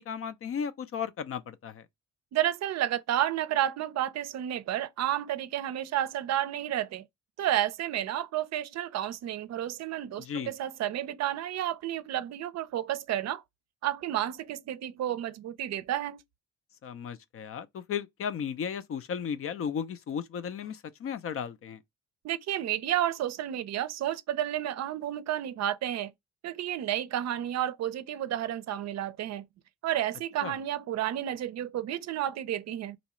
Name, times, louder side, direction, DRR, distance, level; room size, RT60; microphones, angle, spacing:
voice 1, 0.0-1.9 10.2-10.5 16.8-21.8 30.4-30.6, left 7 dB, 50° left, 0.5 m, -35 dB
voice 2, 2.3-7.0 7.4-13.4 13.8-16.2 22.2-26.1 26.4-29.5 29.8-33.0, right 12 dB, 60° right, 0.5 m, -31 dB
4.0 x 2.3 x 2.9 m
cardioid pair, 90°, 30 cm